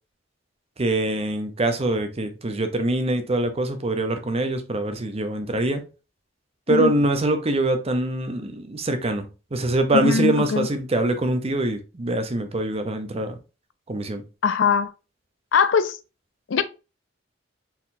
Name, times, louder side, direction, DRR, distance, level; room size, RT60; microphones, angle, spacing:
voice 1, 0.8-5.8 6.7-13.4 13.9-14.2, right 1 dB, 30° right, 0.7 m, -24 dB
voice 2, 9.9-10.7 14.4-14.9 15.5-16.0 16.5-16.6, left 5 dB, 75° left, 0.4 m, -21 dB
4.4 x 3.8 x 2.7 m
head